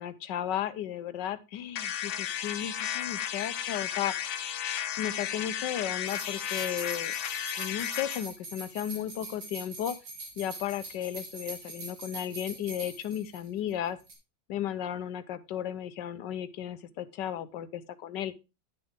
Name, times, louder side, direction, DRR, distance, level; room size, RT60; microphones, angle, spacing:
voice 1, 0.0-4.2 5.0-7.1 7.6-10.0 10.4-14.0 14.5-18.3, left 11 dB, 70° left, 13 dB, 1.3 m, -34 dB
sound 1, 1.8-8.3, left 10 dB, 90° left, 1.5 m, -34 dB
sound 2, 6.1-13.7 14.0-14.1, right 3 dB, 65° right, 3.3 m, -43 dB
11.0 x 6.8 x 3.5 m, 0.27 s
omnidirectional pair, 2.0 m